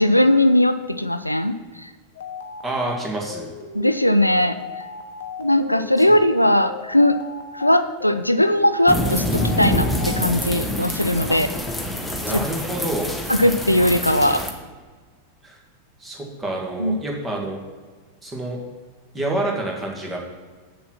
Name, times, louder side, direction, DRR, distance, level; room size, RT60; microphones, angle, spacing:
voice 1, 0.0-1.9 3.7-4.6 5.4-7.2 7.5-11.5 12.3-12.4 13.3-14.4 16.8-17.0, left 1 dB, 90° left, 11 dB, 0.4 m, -19 dB
sound 1, 2.2-10.7, left 5 dB, 60° left, 0.9 m, -36 dB
voice 2, 2.6-3.5 6.1-6.2 11.3-11.4 12.2-13.1 15.4-15.6 16.0-17.6 18.2-18.6 19.1-20.2, right 2 dB, 15° right, -1 dB, 2.0 m, -28 dB
sound 2, 8.9-14.5, left 1 dB, 5° left, 1.1 m, -26 dB
7.6 x 6.9 x 5.7 m, 1.5 s
figure-of-eight pair, 90°, 0 cm